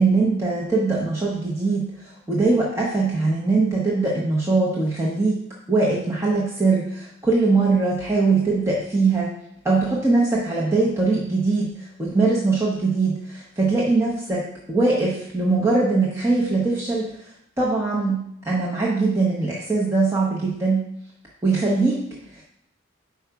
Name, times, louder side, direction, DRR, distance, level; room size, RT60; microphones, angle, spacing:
voice 1, 0.0-1.8 2.3-5.4 5.7-9.3 9.6-11.7 12.0-17.1 17.6-20.8 21.4-22.0 22.4-22.5, right 3 dB, 15° right, -6 dB, 0.8 m, -21 dB
5.4 x 4.7 x 4.6 m, 0.73 s
head